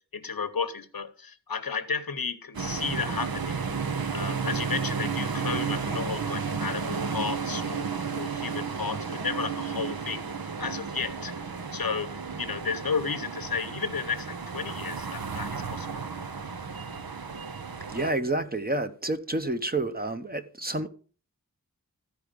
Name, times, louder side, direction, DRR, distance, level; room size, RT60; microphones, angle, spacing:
voice 1, 0.1-3.6 4.1-7.9 8.1-10.3 10.6-11.3 11.7-16.1, left 5 dB, 80° left, 0.9 m, -33 dB
sound 1, 2.5-18.1, right 5 dB, 85° right, 0.8 m, -33 dB
voice 2, 17.9-20.9, right 2 dB, 25° right, 0.9 m, -29 dB
14.5 x 4.8 x 5.2 m
wide cardioid pair, 50°, 35 cm